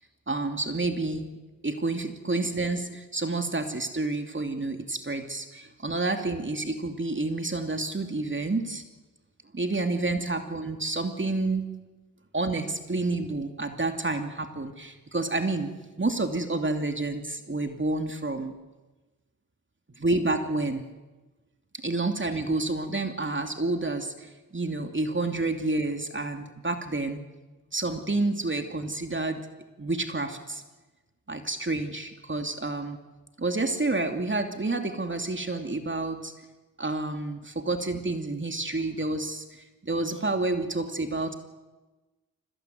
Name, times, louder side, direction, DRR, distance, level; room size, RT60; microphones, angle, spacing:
voice 1, 0.3-1.4 1.6-8.8 9.5-11.7 12.3-18.5 20.0-20.8 21.8-27.2 27.7-29.5 29.8-30.6 31.3-33.0 33.4-36.3 36.8-41.3, right 2 dB, 30° right, 6 dB, 2.8 m, -29 dB
25.0 x 18.0 x 9.5 m, 1.2 s
cardioid pair, 45°, 37 cm